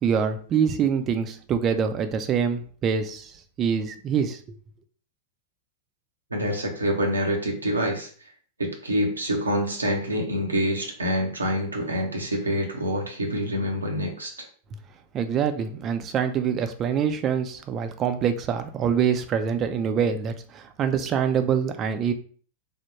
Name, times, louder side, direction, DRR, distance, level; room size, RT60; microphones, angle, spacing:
voice 1, 0.0-3.3 3.6-4.4 15.1-22.1, right 7 dB, 30° right, 8 dB, 0.4 m, -25 dB
voice 2, 6.3-8.1 8.6-14.5, equal, 80° right, 1 dB, 0.6 m, -26 dB
3.4 x 2.1 x 2.9 m, 0.44 s
figure-of-eight pair, 90°, 0 cm